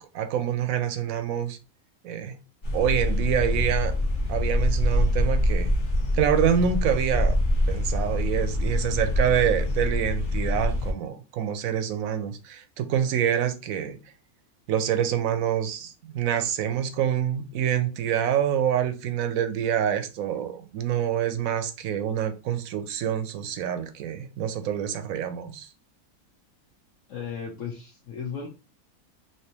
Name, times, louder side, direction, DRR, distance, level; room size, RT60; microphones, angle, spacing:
voice 1, 0.0-1.6 2.0-2.4 2.7-3.9 4.3-5.7 6.1-7.4 7.7-14.0 14.7-25.7, right 9 dB, 75° right, 1.0 m, -26 dB
sound 1, 2.6-10.9, left 1 dB, 45° left, 0.8 m, -25 dB
voice 2, 27.1-28.5, left 6 dB, 65° left, 1.0 m, -35 dB
3.3 x 2.8 x 2.8 m
omnidirectional pair, 1.5 m